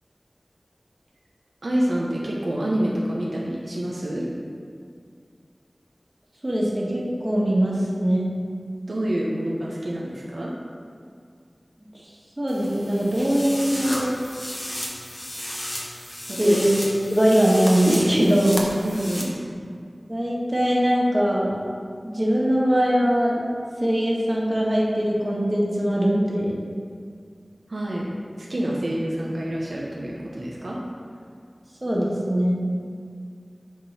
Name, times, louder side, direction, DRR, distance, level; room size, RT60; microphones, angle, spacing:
voice 1, 1.6-4.3 8.9-10.5 16.3-16.6 18.8-19.4 27.7-28.1 28.4-30.8, right 1 dB, 80° right, -4 dB, 0.9 m, -27 dB
voice 2, 6.4-8.3 11.9-12.0 12.4-14.1 16.4-16.8 17.1-18.7 20.1-21.5 22.0-23.5 23.8-26.6 31.8-32.6, equal, 35° right, -5 dB, 1.6 m, -21 dB
sound 1, 12.5-19.2, equal, 30° left, 1.2 m, -33 dB
9.9 x 3.8 x 4.3 m, 2.2 s
wide cardioid pair, 50°, 0 cm